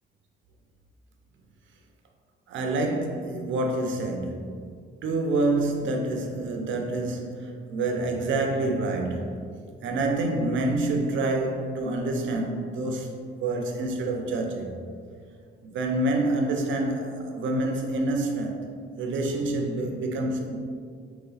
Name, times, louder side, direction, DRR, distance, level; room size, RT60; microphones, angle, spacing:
voice 1, 2.5-4.7 5.0-9.5 9.8-13.1 13.4-14.7 15.6-18.7 19.0-20.6, right 2 dB, 75° right, 3 dB, 0.7 m, -27 dB
4.0 x 3.1 x 4.0 m, 2.1 s
cardioid pair, 90°, 20 cm